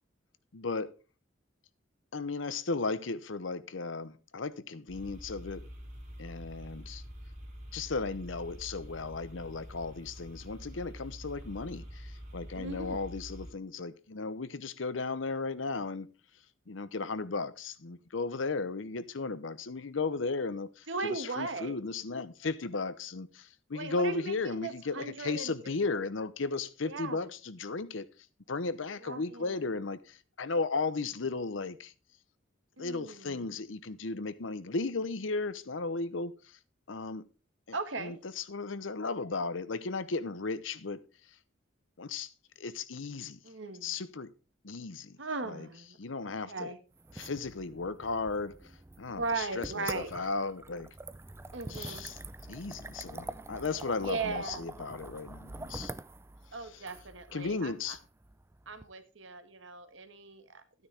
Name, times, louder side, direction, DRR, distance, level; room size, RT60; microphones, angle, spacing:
voice 1, 0.5-0.9 2.1-5.6 6.2-7.0 7.7-16.1 16.7-28.1 28.5-31.9 32.8-36.3 36.9-37.2 38.0-41.0 42.0-42.3 42.6-43.4 43.8-44.3 44.6-45.2 45.5-45.7 46.0-46.7 47.1-48.7 49.0-50.9 51.7-52.2 52.5-55.9 56.7-56.8 57.3-58.0, left 3 dB, 75° left, 0.8 m, -35 dB
sound 1, 4.9-13.5, equal, 40° right, 3.7 m, -46 dB
voice 2, 12.5-13.0 20.9-21.7 23.7-25.7 26.9-27.2 29.0-29.6 32.8-33.4 37.7-38.2 43.4-44.0 45.2-46.0 46.2-46.8 49.1-50.3 51.5-52.1 54.0-54.7 56.5-58.0 58.7-60.6, right 3 dB, 70° right, 1.5 m, -38 dB
sound 2, 47.0-58.8, right 2 dB, 15° right, 0.5 m, -45 dB
12.5 x 9.5 x 3.4 m
head